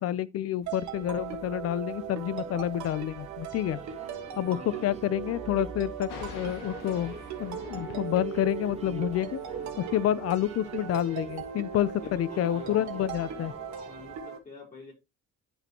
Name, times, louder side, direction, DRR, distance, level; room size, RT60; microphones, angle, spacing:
voice 1, 0.0-3.8 4.4-4.6 4.8-9.4 9.8-13.5, left 12 dB, 50° left, 0.5 m, -29 dB
sound 1, 0.6-14.2, right 4 dB, 20° right, 0.7 m, -46 dB
sound 2, 0.7-14.4, right 8 dB, 60° right, 1.5 m, -39 dB
voice 2, 4.5-5.0 12.0-13.5 13.8-14.9, left 3 dB, 25° left, 3.5 m, -47 dB
Thunder, 6.1-11.1, left 7 dB, 85° left, 1.7 m, -47 dB
11.0 x 4.3 x 2.9 m
cardioid pair, 155°, 32 cm